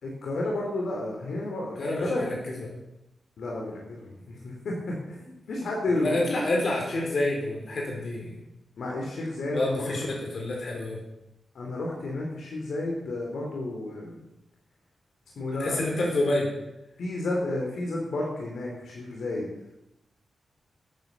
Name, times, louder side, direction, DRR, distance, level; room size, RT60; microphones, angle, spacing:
voice 1, 0.0-2.2 3.4-6.3 8.8-10.0 11.5-14.2 15.4-15.9 17.0-19.5, left 2 dB, 75° left, -1 dB, 3.1 m, -31 dB
voice 2, 1.8-2.7 5.9-8.4 9.5-11.0 15.6-16.5, left 2 dB, 50° left, -1 dB, 4.5 m, -28 dB
12.5 x 9.4 x 6.8 m, 0.89 s
wide cardioid pair, 170°, 0 cm